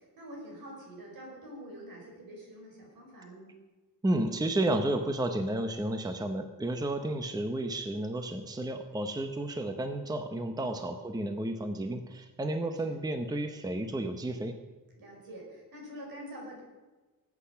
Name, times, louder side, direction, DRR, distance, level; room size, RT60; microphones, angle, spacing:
voice 1, 0.2-3.5 10.6-10.8 12.9-13.0 15.0-16.6, equal, 75° right, -1 dB, 5.5 m, -46 dB
voice 2, 4.0-14.6, right 1 dB, 10° right, 7 dB, 0.8 m, -32 dB
19.0 x 8.6 x 5.7 m, 1.2 s
wide cardioid pair, 170°, 36 cm